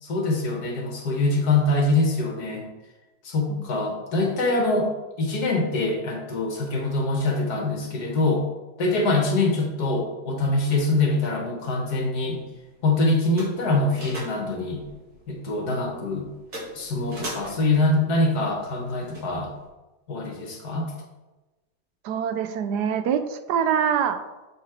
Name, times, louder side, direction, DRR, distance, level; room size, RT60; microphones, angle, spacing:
voice 1, 0.0-2.7 3.2-4.9 5.2-8.4 8.8-12.4 12.8-14.8 15.3-16.3 16.8-19.5 20.1-20.9, left 2 dB, 65° left, 1 dB, 1.8 m, -24 dB
sound 1, 11.7-19.7, right 1 dB, 60° right, 3.2 m, -42 dB
voice 2, 22.0-24.2, right 8 dB, 75° right, 9 dB, 1.1 m, -25 dB
7.5 x 4.3 x 4.3 m, 1.1 s
omnidirectional pair, 1.8 m